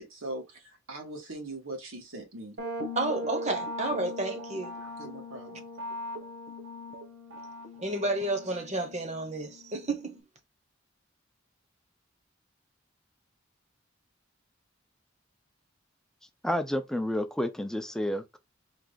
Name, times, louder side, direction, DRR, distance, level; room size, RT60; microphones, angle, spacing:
voice 1, 0.0-2.6 4.8-5.7, right 2 dB, 90° right, 1.7 m, -41 dB
sound 1, 2.6-10.2, left 1 dB, 60° right, 1.3 m, -40 dB
voice 2, 3.0-4.8 7.8-10.2, right 2 dB, 35° right, 1.0 m, -31 dB
voice 3, 16.4-18.4, left 1 dB, 5° left, 0.5 m, -30 dB
4.6 x 2.5 x 3.9 m
head